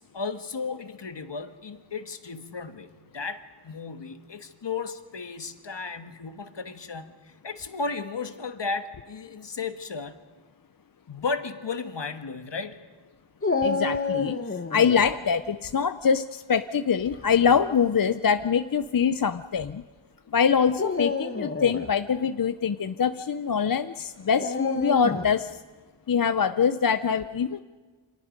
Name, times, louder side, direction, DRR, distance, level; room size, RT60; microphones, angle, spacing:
voice 1, 0.0-10.2 11.1-12.9, left 4 dB, 65° left, 8 dB, 1.5 m, -34 dB
Dog, 13.4-15.1 17.2-17.6 18.4-18.5 20.7-21.9 24.4-25.4, left 3 dB, 30° left, 1.2 m, -29 dB
voice 2, 13.6-14.4 14.7-19.8 20.3-25.6 26.1-27.6, left 6 dB, 50° left, 11 dB, 0.6 m, -24 dB
29.0 x 26.0 x 5.2 m, 1.4 s
wide cardioid pair, 85°, 46 cm